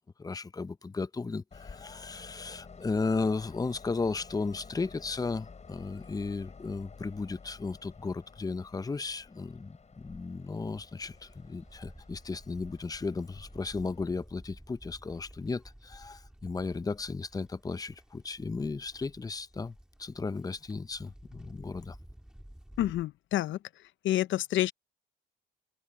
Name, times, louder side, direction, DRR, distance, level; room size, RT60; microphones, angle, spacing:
voice 1, 0.2-22.0, left 4 dB, 20° left, 0.7 m, -35 dB
Train, 1.5-14.1, left 5 dB, 35° left, 6.6 m, -52 dB
Livestock farm animals working animals, 10.5-23.0, equal, 5° right, 3.0 m, -53 dB
voice 2, 22.8-23.6 24.0-24.7, left 13 dB, 75° left, 0.6 m, -28 dB
cardioid pair, 90°, 20 cm